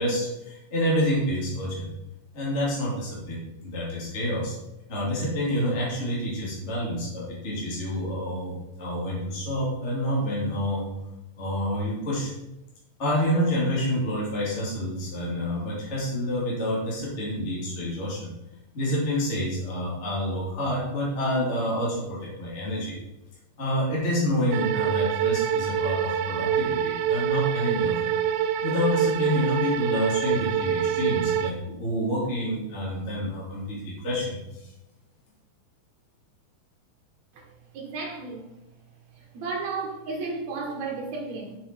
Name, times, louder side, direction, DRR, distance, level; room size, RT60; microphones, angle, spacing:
voice 1, 0.0-1.9 2.3-4.5 4.9-10.9 11.4-12.3 13.0-18.3 18.7-23.0 23.6-28.1 28.6-34.7, equal, 20° left, -6 dB, 2.3 m, -28 dB
sound 1, 24.5-31.5, right 9 dB, 90° right, 2.4 m, -26 dB
voice 2, 37.7-38.5 39.3-41.6, right 4 dB, 60° right, 0 dB, 2.4 m, -33 dB
6.7 x 6.6 x 4.4 m, 0.92 s
omnidirectional pair, 4.2 m